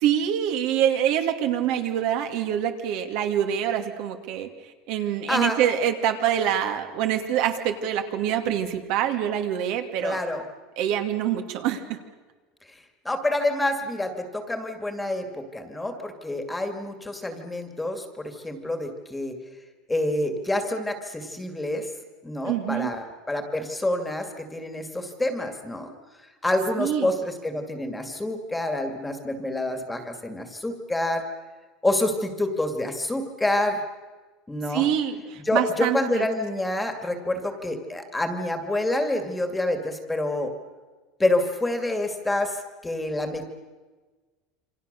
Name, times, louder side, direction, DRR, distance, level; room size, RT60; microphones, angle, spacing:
voice 1, 0.0-4.5 4.9-10.2 10.8-12.0 22.5-22.9 26.8-27.1 34.7-36.3, right 10 dB, 60° right, 5 dB, 2.6 m, -25 dB
voice 2, 5.3-5.6 10.0-10.4 13.0-19.4 19.9-21.9 22.2-25.9 26.4-31.2 31.8-33.8 34.5-34.9 35.4-40.5 41.2-43.6, left 1 dB, 5° left, 6 dB, 2.2 m, -27 dB
28.0 x 25.5 x 6.8 m, 1.3 s
supercardioid pair, 155°, 0 cm